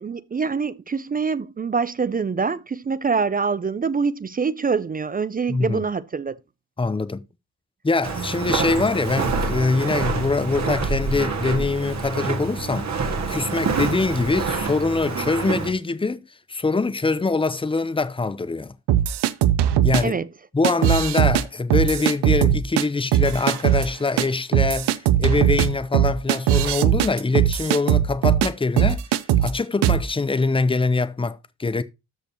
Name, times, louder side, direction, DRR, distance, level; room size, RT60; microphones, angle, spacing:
voice 1, 0.0-6.4 15.5-15.6 20.0-20.3, right 5 dB, 25° right, 0.4 m, -25 dB
voice 2, 5.5-5.9 6.8-7.2 7.8-12.9 13.3-18.7 19.8-20.2 20.5-29.0 29.4-31.8, left 3 dB, 15° left, 0.7 m, -23 dB
Walk footsteps, 8.0-15.7, right 4 dB, 45° right, 1.9 m, -26 dB
sound 1, 18.9-20.0 20.6-21.4 21.7-22.8 23.1-23.9 24.2-24.3 24.5-28.5 28.8-29.5 29.8-30.0, right 11 dB, 85° right, 0.7 m, -19 dB
13.5 x 5.2 x 2.9 m
cardioid pair, 110°, 39 cm